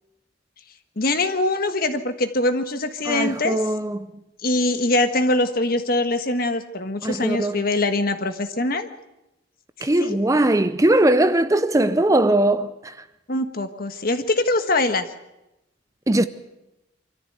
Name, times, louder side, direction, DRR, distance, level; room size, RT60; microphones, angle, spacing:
voice 1, 1.0-3.6 4.4-8.9 9.8-10.2 13.3-15.1, left 2 dB, 50° left, 1.4 m, -23 dB
voice 2, 3.0-4.1 7.0-7.7 9.8-12.9 16.1-16.3, right 1 dB, 15° right, 0.6 m, -20 dB
25.0 x 14.0 x 8.1 m
head